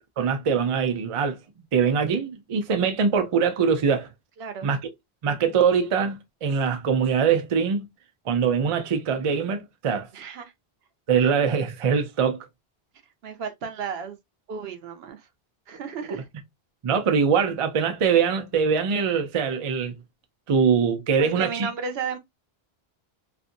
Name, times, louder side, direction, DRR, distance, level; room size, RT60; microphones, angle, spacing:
voice 1, 0.2-1.4 1.7-4.1 4.6-4.8 5.2-7.9 8.3-10.1 11.1-12.4 16.1-16.2 16.8-19.9 20.5-21.7, right 6 dB, 45° right, 0.4 m, -23 dB
voice 2, 4.4-4.7 10.1-10.5 13.2-14.2 14.5-15.3 15.7-16.2 21.2-22.2, right 5 dB, 75° right, 0.9 m, -33 dB
2.6 x 2.5 x 2.5 m
omnidirectional pair, 1.0 m